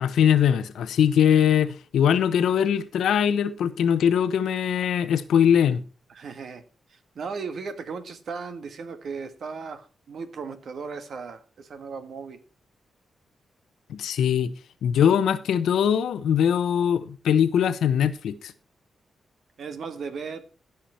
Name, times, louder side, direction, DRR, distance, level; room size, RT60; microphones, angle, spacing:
voice 1, 0.0-5.8 13.9-14.5 14.8-18.5, left 8 dB, 90° left, 0.8 m, -21 dB
voice 2, 6.1-6.6 6.9-12.4 19.6-20.4, right 5 dB, 65° right, 1.5 m, -36 dB
15.5 x 5.8 x 4.4 m
cardioid pair, 85°, 0 cm